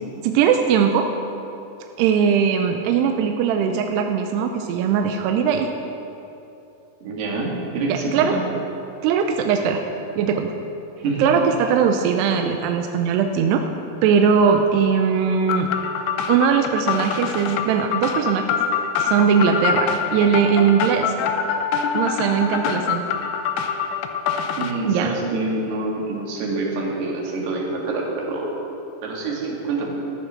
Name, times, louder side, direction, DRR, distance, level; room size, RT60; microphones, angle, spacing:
voice 1, 0.2-1.1 2.0-5.7 7.9-8.3 9.0-9.8 10.2-10.5 11.2-13.6 14.0-15.7 16.3-18.5 19.0-21.1 21.9-23.0 24.9-25.1, right 7 dB, 85° right, 5 dB, 2.6 m, -20 dB
voice 2, 7.0-8.4 11.0-11.3 24.6-28.6 29.0-30.0, right 3 dB, 65° right, -2 dB, 3.9 m, -26 dB
sound 1, 15.5-24.7, left 7 dB, 85° left, 3.1 m, -25 dB
13.5 x 11.0 x 6.4 m, 3.0 s
omnidirectional pair, 5.2 m